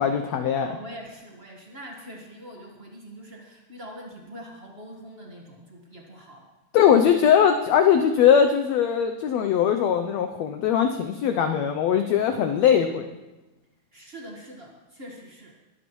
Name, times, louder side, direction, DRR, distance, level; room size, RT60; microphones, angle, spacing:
voice 1, 0.0-0.8 6.7-13.1, left 8 dB, 85° left, 6 dB, 1.5 m, -20 dB
voice 2, 0.6-6.5 13.9-15.5, equal, 75° right, -1 dB, 0.5 m, -43 dB
22.0 x 12.5 x 3.1 m, 1.1 s
omnidirectional pair, 3.9 m